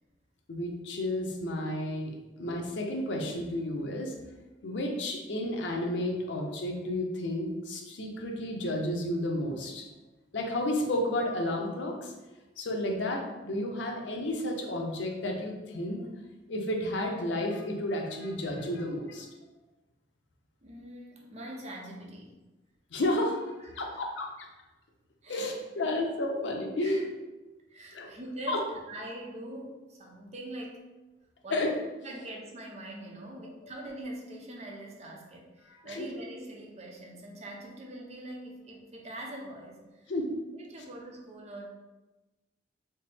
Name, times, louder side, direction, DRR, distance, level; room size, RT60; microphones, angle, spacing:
voice 1, 0.5-4.1 4.6-9.9 10.3-12.1 12.6-16.1 16.5-19.3 22.9-24.5 25.3-27.1 27.9-28.1 28.5-28.6 31.5-31.7 35.8-36.1 40.1-40.4, left 1 dB, 90° left, 1 dB, 0.6 m, -32 dB
voice 2, 20.6-22.4 23.6-23.8 25.2-25.5 26.8-27.1 27.7-30.8 31.4-31.6 32.0-40.1 40.5-41.7, right 1 dB, 40° right, 0 dB, 0.6 m, -43 dB
4.3 x 2.0 x 3.3 m, 1.1 s
head